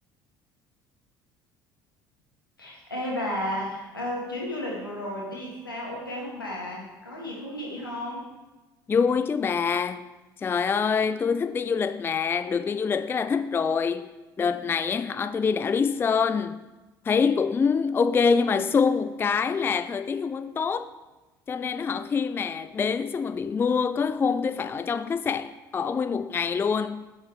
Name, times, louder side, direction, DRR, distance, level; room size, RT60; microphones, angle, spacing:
voice 1, 2.6-8.3, left 1 dB, 85° left, 2.1 m, -33 dB
voice 2, 8.9-10.0 10.4-14.1 14.4-16.6 17.1-20.9 21.5-27.1, left 5 dB, 20° left, 0.4 m, -25 dB
8.2 x 7.4 x 4.7 m
figure-of-eight pair, 60°, 11 cm